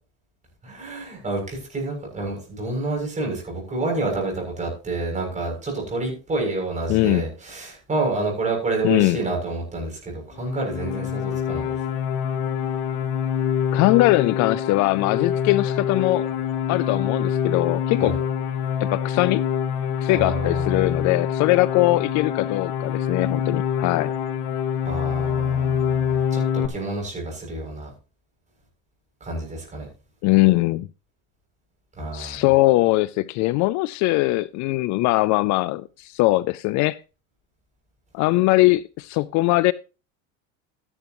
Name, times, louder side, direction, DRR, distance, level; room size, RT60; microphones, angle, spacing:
voice 1, 0.6-11.8 18.0-18.2 20.1-21.0 24.8-27.9 29.2-29.9 31.9-32.4, right 2 dB, 20° right, 7.0 m, -29 dB
voice 2, 6.9-7.2 8.8-9.2 13.7-16.3 16.7-18.1 18.8-19.4 20.0-24.1 30.2-30.9 32.1-37.0 38.1-39.7, left 20 dB, 50° left, 0.4 m, -21 dB
sound 1, 10.4-26.7, left 8 dB, 70° left, 2.3 m, -25 dB
13.0 x 11.0 x 3.0 m
supercardioid pair, 130°, 37 cm